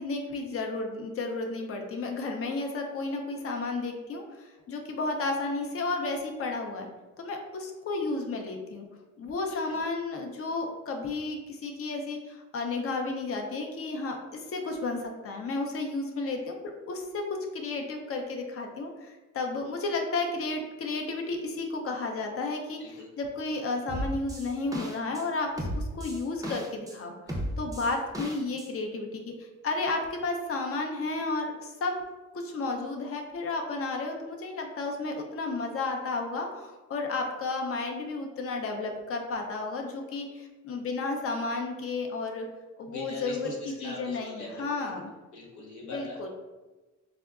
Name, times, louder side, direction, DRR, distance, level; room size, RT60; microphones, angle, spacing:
voice 1, 0.0-6.9 7.2-8.9 9.2-16.6 16.9-17.2 17.5-32.0 32.3-42.5 42.8-45.1 45.8-46.3, left 3 dB, 50° left, 2 dB, 0.5 m, -32 dB
voice 2, 9.5-9.8 22.8-23.1 42.9-44.9 45.3-46.3, left 1 dB, 70° left, -4 dB, 1.0 m, -42 dB
sound 1, 23.9-25.2 25.6-26.9 27.3-28.7, equal, 10° right, 0.5 m, -34 dB
3.6 x 2.1 x 2.3 m, 1.2 s
cardioid pair, 90°, 30 cm